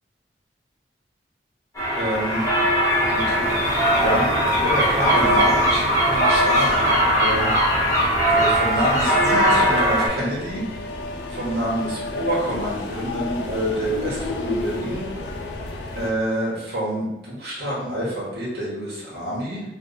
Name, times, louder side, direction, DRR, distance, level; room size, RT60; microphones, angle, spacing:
sound 1, 1.8-10.1, equal, 15° left, 1.2 m, -19 dB
voice 1, 2.0-2.4 3.1-7.5 8.3-10.6 11.3-15.1 15.9-19.6, right 1 dB, 65° right, -7 dB, 1.3 m, -27 dB
sound 2, 3.4-16.1, left 2 dB, 85° left, 0.5 m, -32 dB
3.4 x 2.5 x 4.0 m, 0.99 s
head